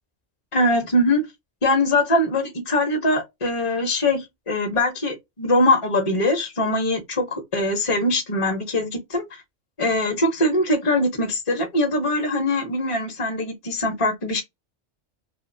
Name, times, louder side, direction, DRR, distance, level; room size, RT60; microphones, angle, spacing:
voice 1, 0.5-1.3 1.6-9.4 9.8-14.4, left 1 dB, 30° left, 0.9 m, -22 dB
2.7 x 2.7 x 2.6 m
omnidirectional pair, 1.3 m